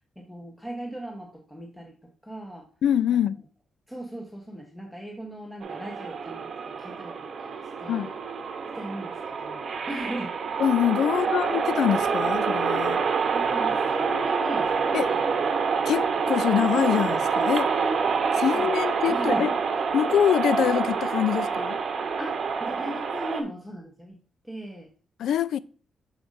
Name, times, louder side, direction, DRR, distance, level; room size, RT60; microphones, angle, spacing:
voice 1, 0.2-2.0 2.2-2.7 3.1-3.3 3.9-8.1 8.7-10.4 11.1-11.5 13.3-15.2 18.5-18.7 19.1-19.5 22.2-24.2 24.4-24.9, right 1 dB, 5° left, 0.9 m, -38 dB
voice 2, 2.8-3.4 7.9-8.1 10.6-13.0 14.9-15.1 15.8-17.7 18.3-19.5 19.9-21.8 25.2-25.6, left 10 dB, 75° left, 0.3 m, -24 dB
sound 1, 5.6-23.4, right 5 dB, 45° right, 0.9 m, -27 dB
7.8 x 6.1 x 2.5 m
wide cardioid pair, 170°, 0 cm